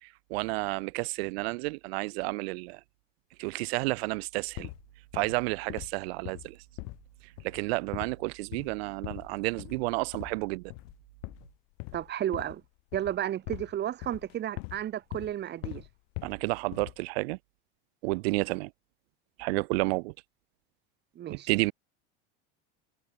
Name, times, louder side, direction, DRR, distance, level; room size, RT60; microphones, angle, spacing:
voice 1, 0.0-2.8 3.4-4.7 5.1-6.6 7.4-10.7 16.2-17.4 18.0-18.7 19.4-20.1 21.3-21.7, right 26 dB, 80° right, 1.0 m, -31 dB
sound 1, 4.5-4.8 5.1-5.4 5.7-6.0 6.2-7.1 7.4-7.7 7.9-8.2 8.5-8.8 9.0-9.3 9.6-9.9 10.1-10.4 10.7-10.9 11.2-12.7 12.9-13.7 14.0-14.8 15.1-15.3 15.6-16.4 16.7-17.1, left 40 dB or more, 70° left, 2.7 m, -41 dB
voice 2, 11.9-12.6 12.9-15.8 21.1-21.7, right 11 dB, 35° right, 1.2 m, -33 dB
supercardioid pair, 120°, 31 cm